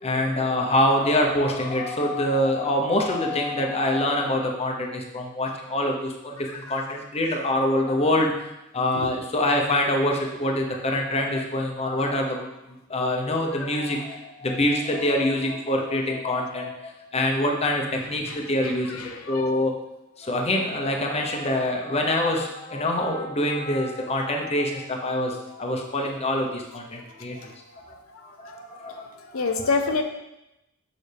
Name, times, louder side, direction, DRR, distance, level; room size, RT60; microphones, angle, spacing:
voice 1, 0.0-8.4 8.7-12.5 12.9-19.0 19.3-19.7 20.2-27.4 27.9-28.0 28.2-29.1 29.5-29.7, left 1 dB, 30° left, 1 dB, 0.9 m, -25 dB
voice 2, 19.0-19.4 25.5-25.7 28.1-28.2 28.5-28.6 29.2-30.0, left 4 dB, 85° left, 4 dB, 0.7 m, -27 dB
7.1 x 6.5 x 3.4 m, 0.93 s
head